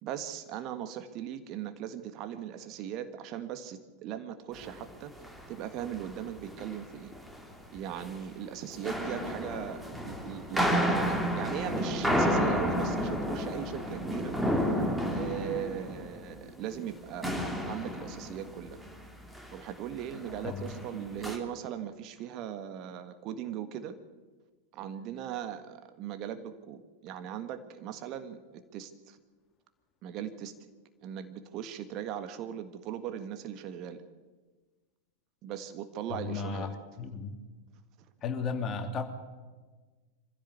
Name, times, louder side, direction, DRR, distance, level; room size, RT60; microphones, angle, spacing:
voice 1, 0.0-7.1 7.7-14.3 15.1-18.8 19.5-24.0 24.7-29.2 30.0-30.5 31.0-34.0 35.4-36.7, right 9 dB, 40° right, 9 dB, 1.6 m, -39 dB
sound 1, 4.5-4.8 5.1-5.5 5.8-7.5 7.8-8.1 8.7-17.0 17.2-19.1 19.3-19.7 20.0-21.4, equal, ahead, 2.9 m, -31 dB
voice 2, 20.4-20.8 36.1-36.7 37.0-37.4 38.2-39.0, left 5 dB, 30° left, 5 dB, 2.9 m, -34 dB
24.5 x 16.0 x 8.2 m, 1.3 s
figure-of-eight pair, 90°, 0 cm